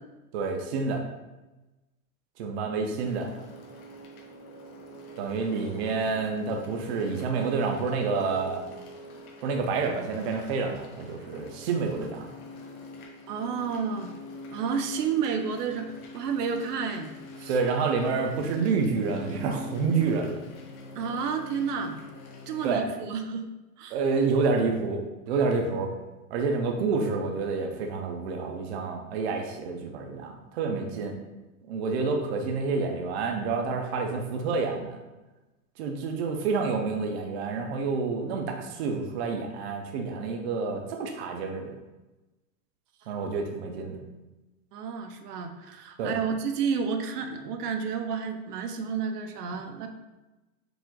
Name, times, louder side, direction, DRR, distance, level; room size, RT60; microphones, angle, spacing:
voice 1, 0.3-1.0 2.4-3.3 5.2-8.6 9.4-12.2 17.5-20.4 22.6-22.9 23.9-25.9 26.3-31.1 31.7-35.0 35.8-41.7 43.1-44.0 46.0-46.1, right 4 dB, 45° right, 3 dB, 0.5 m, -28 dB
sound 1, 3.0-22.7, left 1 dB, 70° left, 1.1 m, -45 dB
voice 2, 13.3-14.1 14.5-17.1 17.4-17.6 21.0-22.0 22.5-23.4 23.8-24.0 44.7-49.9, right 6 dB, 80° right, 5 dB, 0.7 m, -31 dB
4.8 x 2.4 x 3.8 m, 1.1 s
supercardioid pair, 165°, 46 cm